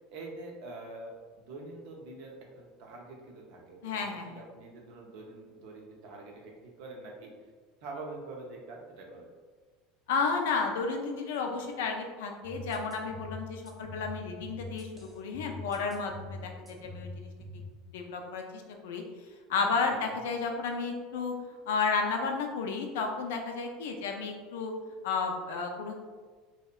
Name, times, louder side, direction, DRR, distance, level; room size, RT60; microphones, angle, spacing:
voice 1, 0.1-7.3 7.8-9.3 16.4-16.8 19.9-20.1, right 2 dB, 60° right, -1 dB, 0.5 m, -45 dB
voice 2, 3.8-4.4 10.1-17.3 17.9-19.0 19.5-21.3 21.7-24.7 25.0-26.1, left 4 dB, 70° left, 3 dB, 0.3 m, -32 dB
sound 1, 12.4-17.7, left 2 dB, 10° right, 0.5 m, -44 dB
2.7 x 2.1 x 2.3 m, 1.4 s
hypercardioid pair, 75°, 0 cm